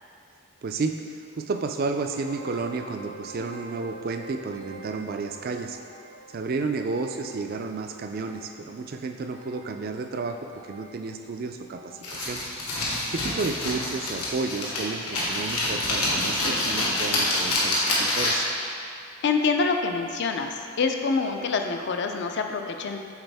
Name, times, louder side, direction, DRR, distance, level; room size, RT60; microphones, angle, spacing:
voice 1, 0.6-5.8 6.3-10.4 10.7-12.4 13.1-18.5, right 4 dB, 40° right, 6 dB, 0.3 m, -32 dB
sound 1, 2.2-13.7 13.9-14.4 15.0-15.2 15.5-15.6 16.2-16.3, right 3 dB, 85° right, 1.4 m, -47 dB
sound 2, 12.0-18.6, left 1 dB, 90° left, 1.4 m, -27 dB
voice 2, 19.2-23.1, left 4 dB, 50° left, 5 dB, 0.4 m, -26 dB
8.0 x 4.0 x 3.4 m, 2.4 s
head